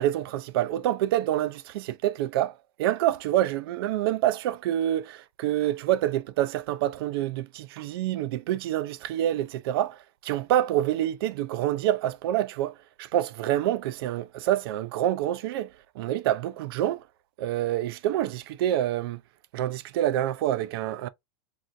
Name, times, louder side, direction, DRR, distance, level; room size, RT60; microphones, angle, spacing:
voice 1, 0.0-15.7 16.0-17.0 17.4-19.2 19.5-21.1, right 12 dB, 50° right, 0.5 m, -27 dB
3.4 x 2.7 x 2.5 m
supercardioid pair, 165°, 16 cm